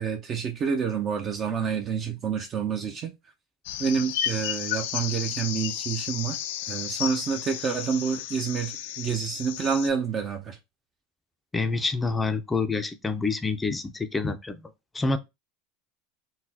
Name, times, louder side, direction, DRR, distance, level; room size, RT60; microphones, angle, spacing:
voice 1, 0.0-3.1 3.8-6.4 6.7-10.6, right 6 dB, 35° right, 0.5 m, -28 dB
sound 1, 3.6-9.9, left 11 dB, 80° left, 0.4 m, -33 dB
voice 2, 11.5-15.2, left 3 dB, 15° left, 0.5 m, -27 dB
3.9 x 2.1 x 2.8 m
supercardioid pair, 115°, 0 cm